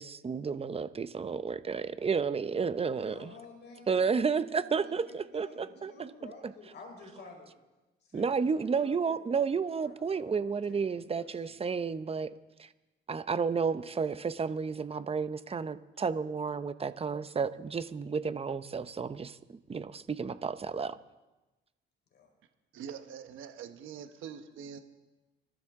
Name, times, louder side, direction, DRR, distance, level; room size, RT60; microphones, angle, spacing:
voice 1, 0.0-3.3 3.9-6.5 8.1-12.3 12.6-12.7 13.1-21.0, right 5 dB, 30° right, 13 dB, 0.8 m, -32 dB
voice 2, 2.8-7.5 8.0-11.6 22.1-22.3, left 4 dB, 60° left, 1 dB, 4.5 m, -52 dB
voice 3, 22.7-24.8, right 8 dB, 80° right, 8 dB, 1.1 m, -44 dB
28.5 x 13.0 x 3.7 m, 1.1 s
cardioid pair, 90°, 20 cm